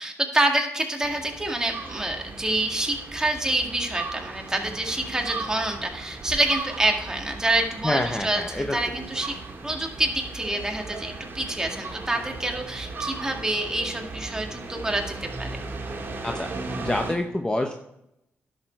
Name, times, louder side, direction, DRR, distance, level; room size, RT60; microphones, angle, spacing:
voice 1, 0.0-9.4 9.6-15.5, right 1 dB, 15° right, 2 dB, 2.0 m, -27 dB
sound 1, 1.0-17.1, right 3 dB, 50° right, 2.0 m, -37 dB
voice 2, 7.8-8.8 16.2-16.5 16.8-17.7, left 1 dB, 15° left, 4 dB, 0.8 m, -26 dB
11.0 x 6.8 x 4.6 m, 0.83 s
cardioid pair, 70°, 5 cm